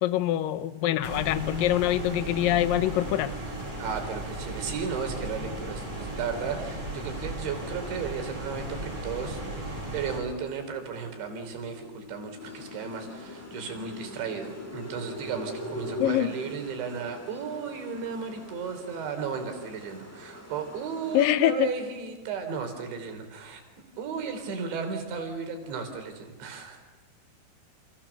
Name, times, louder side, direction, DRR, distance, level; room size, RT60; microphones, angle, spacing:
voice 1, 0.0-3.3 16.0-16.3 21.1-21.7, left 13 dB, 70° left, 13 dB, 2.2 m, -24 dB
sound 1, 1.0-10.2, right 1 dB, 35° right, 8.8 m, -36 dB
voice 2, 3.8-23.6 24.0-26.8, right 6 dB, 90° right, 6 dB, 5.9 m, -35 dB
sound 2, 10.9-16.1, left 1 dB, 30° left, 3.7 m, -42 dB
sound 3, 12.4-21.2, equal, 5° left, 1.2 m, -48 dB
29.0 x 28.5 x 7.1 m, 1.2 s
omnidirectional pair, 5.0 m